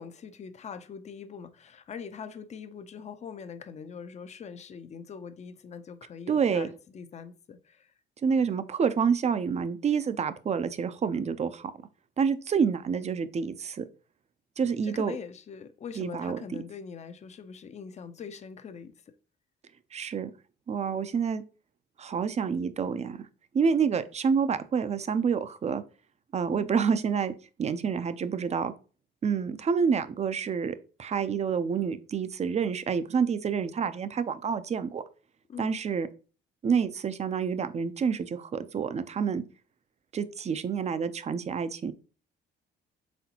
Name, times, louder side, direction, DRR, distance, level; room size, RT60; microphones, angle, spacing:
voice 1, 0.0-7.9 14.6-18.9 26.5-26.8 35.5-35.8, left 6 dB, 35° left, 0.5 m, -43 dB
voice 2, 6.3-6.7 8.2-11.7 12.2-13.8 14.6-15.1 16.0-16.4 19.9-20.3 20.7-21.4 22.0-23.3 23.5-25.8 26.3-27.3 27.6-28.7 29.2-35.0 35.6-36.1 36.6-39.4 40.1-41.9, right 6 dB, 35° right, 0.4 m, -28 dB
4.1 x 3.7 x 2.8 m
cardioid pair, 90°, 20 cm